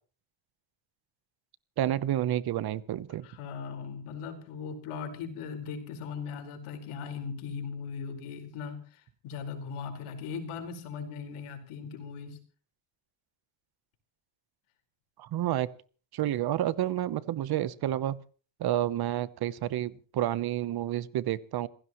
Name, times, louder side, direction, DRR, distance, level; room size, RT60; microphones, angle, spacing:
voice 1, 1.8-3.3 15.2-15.7 16.1-18.2 18.6-21.7, right 12 dB, 50° right, 17 dB, 0.9 m, -30 dB
voice 2, 3.2-12.4, left 6 dB, 90° left, 5 dB, 4.9 m, -39 dB
27.0 x 16.0 x 3.1 m, 0.40 s
cardioid pair, 155°, 49 cm